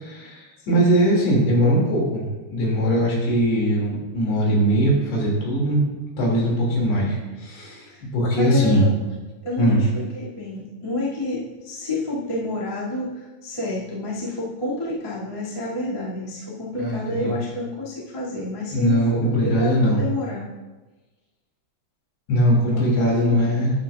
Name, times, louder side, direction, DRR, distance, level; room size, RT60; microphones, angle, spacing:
voice 1, 0.0-5.8 6.2-7.8 8.1-8.8 9.6-9.8 16.8-17.3 18.7-20.0 22.3-23.7, equal, 70° left, -3 dB, 4.7 m, -20 dB
voice 2, 8.3-8.9 9.4-20.5 22.7-23.5, left 2 dB, 20° left, -8 dB, 0.9 m, -29 dB
12.5 x 10.5 x 2.5 m, 1.2 s
omnidirectional pair, 5.2 m